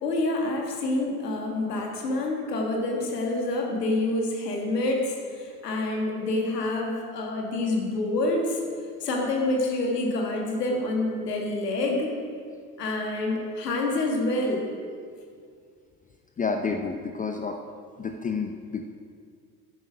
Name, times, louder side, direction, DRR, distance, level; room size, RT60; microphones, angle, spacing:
voice 1, 0.0-8.6 9.0-12.1 12.8-14.6, left 2 dB, 80° left, 0 dB, 1.8 m, -27 dB
voice 2, 16.4-17.6 18.0-19.0, left 4 dB, 15° left, 5 dB, 0.6 m, -30 dB
11.0 x 8.9 x 5.0 m, 2.1 s
figure-of-eight pair, 65°, 47 cm